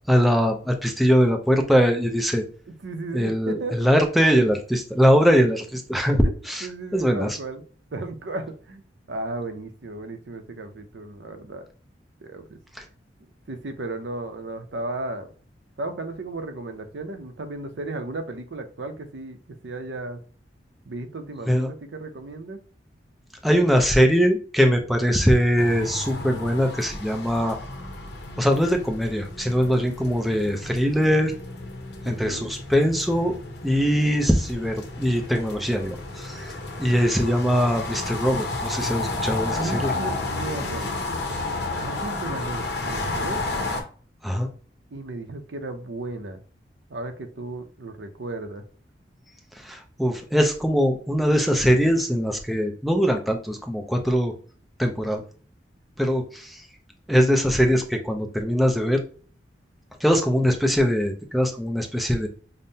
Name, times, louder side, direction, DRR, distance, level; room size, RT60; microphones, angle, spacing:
voice 1, 0.1-2.4 3.1-6.7 6.9-7.4 12.8-12.9 21.5-21.7 23.4-27.6 28.4-31.3 32.0-33.3 33.6-39.9 44.2-44.5 49.6-54.3 54.8-55.2 56.0-56.6 57.1-59.0 60.0-62.3, equal, ahead, 3 dB, 0.5 m, -22 dB
voice 2, 2.8-3.8 6.6-7.6 7.9-11.6 12.2-12.6 13.5-15.3 15.8-19.4 19.6-20.2 20.9-22.6 32.0-32.5 39.5-40.8 41.8-43.4 44.9-46.4 46.9-48.6, right 2 dB, 80° right, 7 dB, 0.6 m, -34 dB
sound 1, 25.6-43.8, left 2 dB, 65° left, 0.8 m, -32 dB
5.3 x 2.1 x 2.7 m, 0.41 s
head